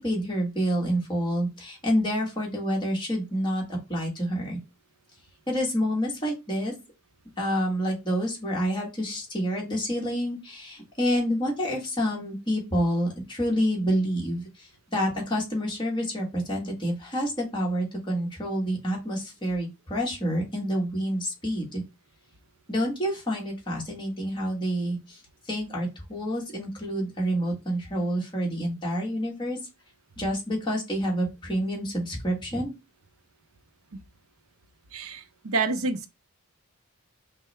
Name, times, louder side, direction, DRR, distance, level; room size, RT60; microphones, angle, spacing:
voice 1, 0.0-4.6 5.5-6.7 7.4-21.8 22.7-25.2 25.5-29.6 30.2-32.7, equal, 20° left, 1.4 m, -28 dB
voice 2, 34.9-36.1, right 3 dB, 70° right, 0.6 m, -28 dB
5.5 x 2.1 x 3.2 m
head